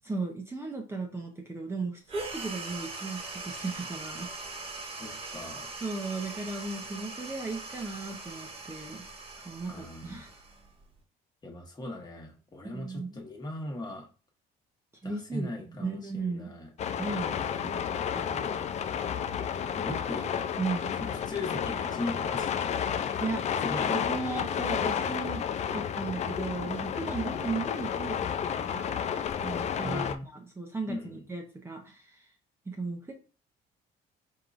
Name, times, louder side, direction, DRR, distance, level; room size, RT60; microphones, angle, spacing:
voice 1, 0.0-4.3 5.8-9.0 9.4-10.4 12.6-13.2 15.0-16.5 17.0-17.8 18.1-18.6 20.6-20.9 23.0-23.4 23.9-25.4 25.7-28.3 28.6-29.0 29.4-32.3 32.7-33.1, right 3 dB, 15° right, 2 dB, 0.7 m, -36 dB
sound 1, 2.1-11.0, right 3 dB, 35° right, 1.2 m, -41 dB
voice 2, 5.0-5.7 9.7-10.2 11.4-14.1 15.0-16.7 19.8-20.3 21.0-22.7 23.6-23.9 29.8-30.3 30.9-31.2, left 2 dB, 25° left, 1 dB, 1.3 m, -38 dB
sound 2, 16.8-30.2, left 8 dB, 40° left, 0.4 m, -31 dB
4.6 x 3.7 x 2.5 m, 0.37 s
cardioid pair, 110°, 17 cm